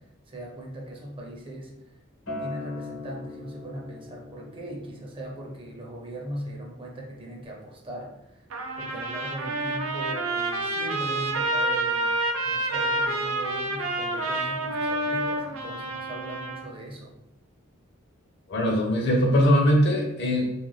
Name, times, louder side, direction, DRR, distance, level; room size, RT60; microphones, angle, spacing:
voice 1, 0.3-2.0 2.4-8.5 8.8-12.2 12.5-17.1, right 1 dB, 25° right, -1 dB, 0.5 m, -39 dB
Acoustic guitar, 2.3-7.5, left 3 dB, 90° left, 1.0 m, -42 dB
Trumpet, 8.5-16.7, right 2 dB, 90° right, 0.4 m, -28 dB
voice 2, 18.5-20.5, equal, 55° left, 1 dB, 0.6 m, -21 dB
2.4 x 2.2 x 3.1 m, 0.90 s
head